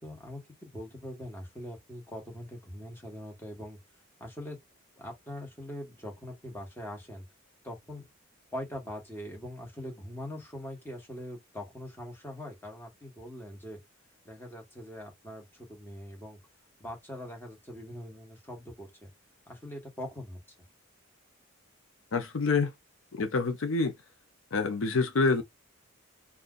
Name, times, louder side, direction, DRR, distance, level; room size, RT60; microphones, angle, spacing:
voice 1, 0.0-3.8 4.2-4.6 5.0-7.2 7.6-8.1 8.5-13.8 14.2-16.4 16.8-19.1 19.5-20.4, left 1 dB, 10° left, 1.2 m, -42 dB
voice 2, 22.1-22.7 23.1-23.9 24.5-25.4, left 4 dB, 70° left, 0.6 m, -27 dB
2.5 x 2.3 x 3.7 m
head